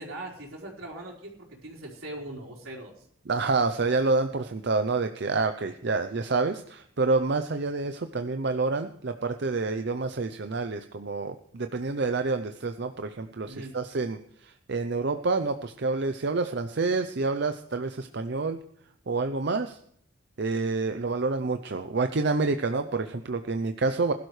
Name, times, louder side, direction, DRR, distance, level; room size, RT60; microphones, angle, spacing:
voice 1, 0.0-3.1 13.4-13.8, right 1 dB, 80° right, -1 dB, 4.4 m, -41 dB
voice 2, 3.3-18.6 19.1-19.8 20.4-24.1, right 3 dB, 55° right, 8 dB, 0.6 m, -28 dB
20.5 x 12.0 x 3.3 m, 0.68 s
head